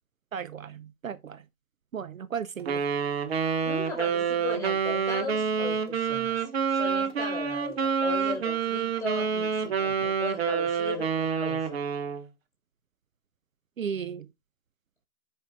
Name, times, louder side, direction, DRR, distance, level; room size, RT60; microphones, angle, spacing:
voice 1, 0.3-1.4 1.9-2.8 13.8-14.2, right 7 dB, 60° right, 0.8 m, -35 dB
Wind instrument woodwind instrument, 2.7-12.2, right 6 dB, 45° right, 1.5 m, -28 dB
voice 2, 3.6-6.3 6.7-11.8, left 3 dB, 5° left, 4.5 m, -37 dB
9.7 x 5.7 x 2.4 m
figure-of-eight pair, 145°, 45 cm